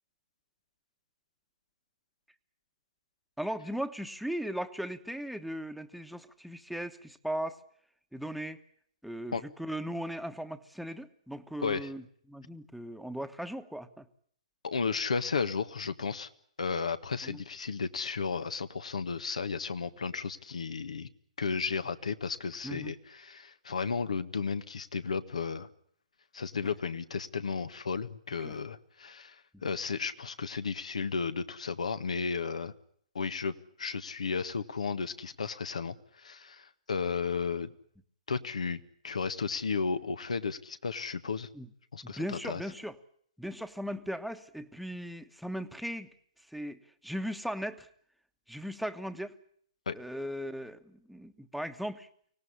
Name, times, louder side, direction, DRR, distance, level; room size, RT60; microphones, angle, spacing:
voice 1, 3.4-7.6 8.1-8.6 9.0-12.0 12.3-14.1 17.2-17.4 22.6-22.9 28.4-28.6 29.5-29.6 41.5-41.7 42.0-43.0 43.4-46.1 46.5-47.9 48.5-49.3 49.9-52.1, equal, ahead, 9 dB, 1.2 m, -38 dB
voice 2, 14.6-16.3 16.6-21.1 21.4-25.7 26.3-32.7 33.1-37.7 38.3-41.5 41.9-42.6 49.8-50.0, left 5 dB, 80° left, 11 dB, 1.6 m, -34 dB
24.5 x 17.5 x 9.9 m, 0.65 s
hypercardioid pair, 130°, 4 cm